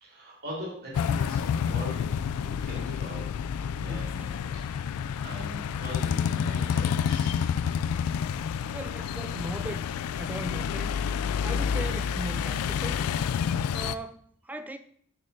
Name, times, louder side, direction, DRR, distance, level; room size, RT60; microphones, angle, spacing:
voice 1, 0.0-2.0 2.3-3.2 3.8-4.9 5.2-7.4, left 1 dB, 45° right, 2.7 m, -41 dB
sound 1, 0.9-14.0, left 7 dB, 85° left, 0.3 m, -29 dB
voice 2, 3.9-4.4 8.7-9.9 10.2-11.0 11.4-13.0 13.7-14.8, right 1 dB, 10° right, 0.3 m, -38 dB
6.5 x 6.3 x 2.7 m
head